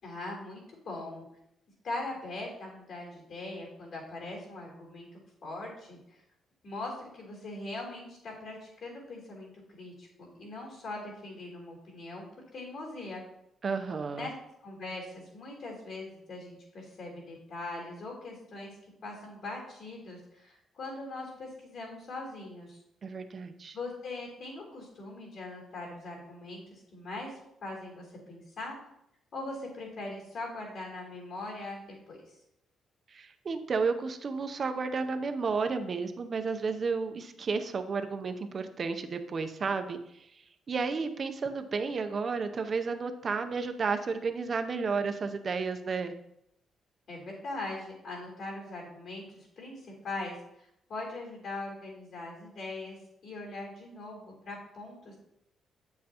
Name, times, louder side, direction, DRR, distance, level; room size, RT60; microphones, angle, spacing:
voice 1, 0.0-1.2 1.8-5.1 5.4-6.2 6.6-12.2 12.5-13.2 14.1-14.3 14.6-18.7 19.0-22.8 23.7-27.3 27.6-28.8 29.3-32.2 47.1-53.0 53.2-55.2, left 2 dB, 55° left, -2 dB, 3.4 m, -41 dB
voice 2, 13.6-14.3 23.0-23.8 33.1-40.0 40.3-46.1, right 4 dB, 35° right, 8 dB, 0.7 m, -32 dB
8.9 x 7.6 x 2.9 m, 0.77 s
cardioid pair, 150°, 0 cm